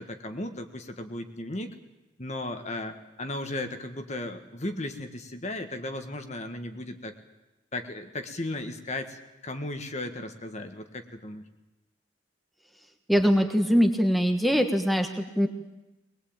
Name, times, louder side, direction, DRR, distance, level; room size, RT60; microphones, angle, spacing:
voice 1, 0.0-1.7 2.2-7.1 7.7-11.4, left 1 dB, 35° left, 7 dB, 1.6 m, -35 dB
voice 2, 13.1-15.5, equal, ahead, 4 dB, 1.3 m, -22 dB
21.5 x 20.5 x 8.8 m, 1.0 s
head